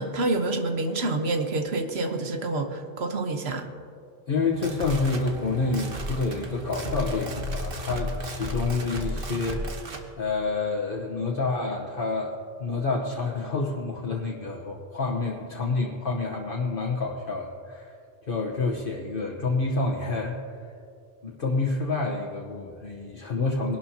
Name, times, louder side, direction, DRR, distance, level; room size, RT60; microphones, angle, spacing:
voice 1, 0.0-3.7, right 2 dB, 85° right, 5 dB, 1.3 m, -27 dB
voice 2, 4.3-12.3 12.6-17.9 18.2-20.4 21.2-23.8, left 3 dB, 60° left, -2 dB, 1.2 m, -28 dB
sound 1, 4.4-10.1, right 1 dB, 65° right, 1.3 m, -34 dB
21.5 x 11.5 x 2.8 m, 2.4 s
omnidirectional pair, 1.0 m